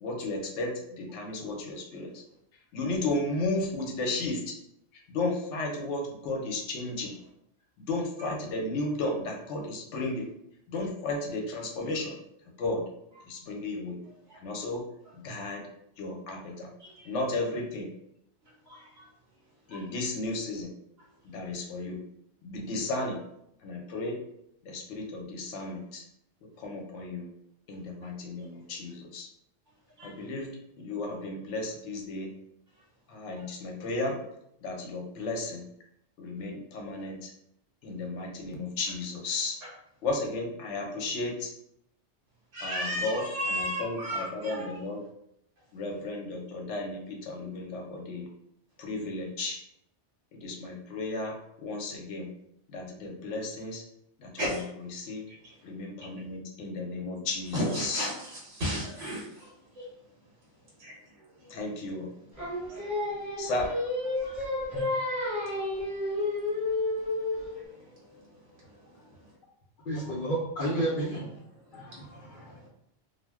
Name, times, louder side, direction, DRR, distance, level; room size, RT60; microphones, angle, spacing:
voice 1, 0.0-2.2 2.7-4.4 5.1-7.1 7.9-10.3 10.7-12.1 12.6-12.8 13.2-14.0 14.4-14.8 15.1-15.7 16.0-16.7 17.0-17.9 19.7-20.7 21.2-22.0 22.4-23.2 23.6-24.2 24.6-26.0 26.4-27.3 27.7-29.3 30.0-30.5 30.8-32.3 33.1-34.2 34.6-35.6 36.2-37.3 37.8-39.6 40.0-41.5 42.6-43.2 43.5-45.0 45.7-48.3 48.8-49.6 50.3-52.3 52.7-53.8 54.2-54.4 54.9-55.2 55.6-58.1 61.5-62.1 63.4-63.7, left 2 dB, 80° left, 1 dB, 1.0 m, -34 dB
voice 2, 14.0-14.4 16.8-17.1 18.4-19.1 19.7-19.9 21.0-21.1 25.7-25.8 28.0-28.1 28.4-28.5 30.0-30.3 33.4-33.5 39.6-39.7 42.5-44.8 54.4-54.7 55.3-55.7 56.0-56.2 57.5-61.6 62.1-63.5 64.0-69.3 71.5-72.7, equal, 55° right, -6 dB, 1.1 m, -38 dB
Singing, 62.4-67.6, left 2 dB, 15° right, 1.1 m, -31 dB
voice 3, 69.9-71.3 71.7-72.6, right 1 dB, 55° left, -6 dB, 0.7 m, -31 dB
2.4 x 2.1 x 3.4 m, 0.77 s
omnidirectional pair, 1.2 m